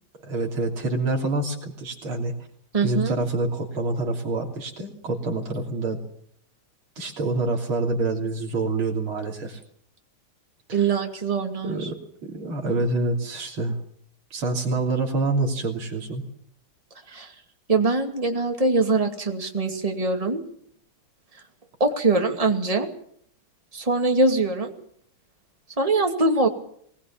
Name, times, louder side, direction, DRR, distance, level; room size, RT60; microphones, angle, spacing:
voice 1, 0.2-2.3 2.8-6.0 7.0-9.6 10.7-10.8 11.6-11.9 12.2-13.8 14.3-16.2, right 2 dB, 90° right, 0 dB, 3.9 m, -26 dB
voice 2, 2.7-3.2 10.7-11.9 17.1-17.3 17.7-20.4 21.8-22.9 23.7-24.7 25.8-26.5, right 3 dB, 15° right, 3 dB, 2.5 m, -23 dB
22.5 x 20.0 x 7.3 m, 0.65 s
omnidirectional pair, 2.2 m